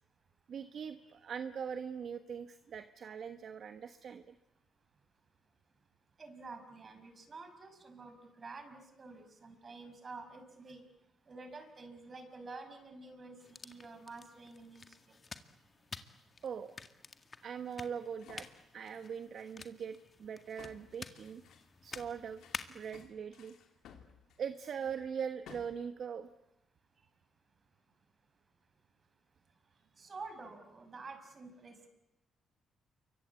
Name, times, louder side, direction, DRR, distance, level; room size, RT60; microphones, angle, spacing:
voice 1, 0.5-4.3 16.4-16.7 17.4-18.5 18.7-21.4 21.8-22.4 22.7-23.5 24.4-26.3, right 7 dB, 60° right, 10 dB, 1.2 m, -41 dB
voice 2, 6.2-10.8 11.3-15.1 30.0-31.9, right 3 dB, 40° right, 8 dB, 5.8 m, -49 dB
sound 1, 13.4-23.0, left 4 dB, 35° left, 2.0 m, -50 dB
sound 2, 18.2-19.2 20.0-20.1 20.6-24.7 25.5-25.9, left 7 dB, 80° left, 3.1 m, -57 dB
28.5 x 24.0 x 8.5 m, 0.88 s
cardioid pair, 90°, 0 cm